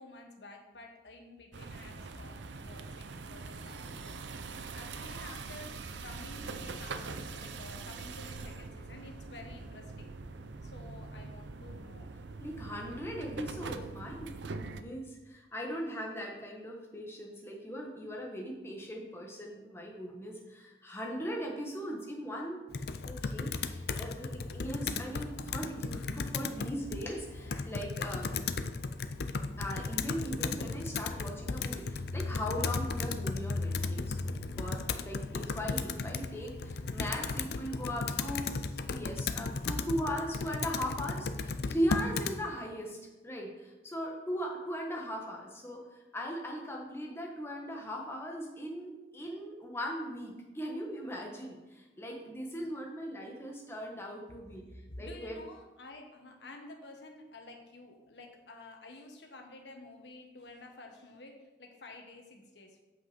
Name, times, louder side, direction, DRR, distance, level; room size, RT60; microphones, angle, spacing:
voice 1, 0.0-10.2 10.6-12.1 37.6-39.1 39.6-39.8 54.6-62.8, left 2 dB, 80° left, 3 dB, 1.4 m, -50 dB
sound 1, 1.5-14.8, right 4 dB, 90° right, 0.6 m, -43 dB
voice 2, 12.4-22.6 23.0-28.5 29.6-38.5 38.9-43.0 43.2-45.8 46.1-54.6 55.0-55.4, equal, 15° left, 0 dB, 1.4 m, -39 dB
Computer keyboard, 22.7-42.4, left 4 dB, 60° left, 0.5 m, -35 dB
7.9 x 6.1 x 5.1 m, 1.1 s
head